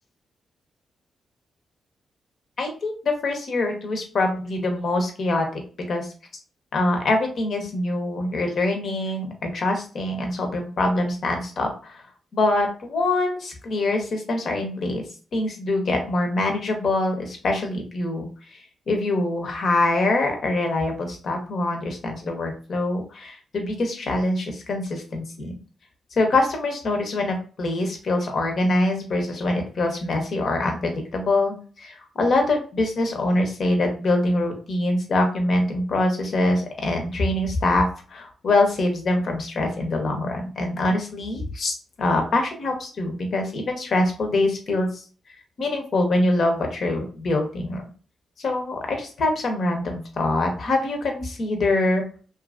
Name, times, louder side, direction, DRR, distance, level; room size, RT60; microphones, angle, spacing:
voice 1, 2.6-5.6 5.9-6.1 6.7-12.0 12.3-15.0 15.3-18.3 18.9-25.6 26.2-45.0 45.6-47.8 48.4-52.0, left 2 dB, 65° left, 3 dB, 0.8 m, -24 dB
2.7 x 2.5 x 2.5 m, 0.38 s
supercardioid pair, 55°, 0 cm